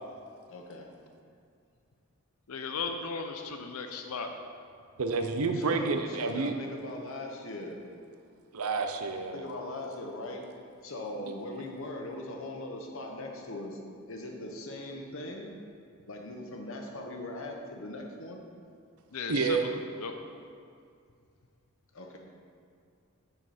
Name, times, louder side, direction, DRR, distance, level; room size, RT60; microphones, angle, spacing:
voice 1, 0.5-0.9 5.5-7.8 9.3-10.5 10.8-13.8 14.1-15.5 16.1-18.4 21.9-22.2, left 1 dB, 65° left, 2 dB, 1.1 m, -40 dB
voice 2, 2.5-4.3 19.1-20.1, left 5 dB, 90° left, 5 dB, 0.6 m, -36 dB
voice 3, 5.0-6.5 8.5-9.4 19.3-19.6, right 4 dB, 85° right, 6 dB, 0.6 m, -29 dB
9.2 x 6.4 x 4.3 m, 2.3 s
head